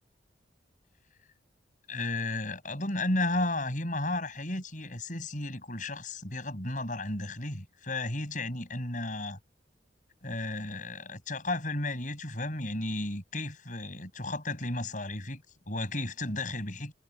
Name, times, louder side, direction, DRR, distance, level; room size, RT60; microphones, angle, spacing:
voice 1, 1.9-9.4 10.2-16.9, left 2 dB, 40° left, 7.1 m, -33 dB
head